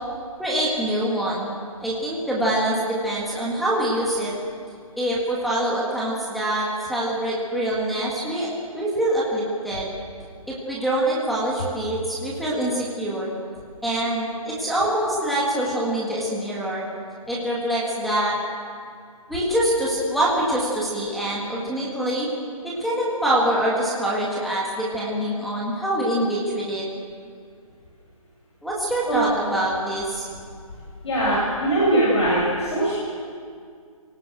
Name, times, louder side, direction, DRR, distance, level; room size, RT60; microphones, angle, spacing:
voice 1, 0.4-1.5 1.8-4.3 5.0-9.9 10.5-13.3 13.8-16.8 17.3-18.4 19.3-22.3 22.6-26.8 28.6-30.3, right 1 dB, ahead, -6 dB, 1.8 m, -25 dB
voice 2, 31.0-32.9, right 1 dB, 50° left, -6 dB, 7.3 m, -21 dB
26.0 x 18.5 x 7.9 m, 2.1 s
hypercardioid pair, 170°, 19 cm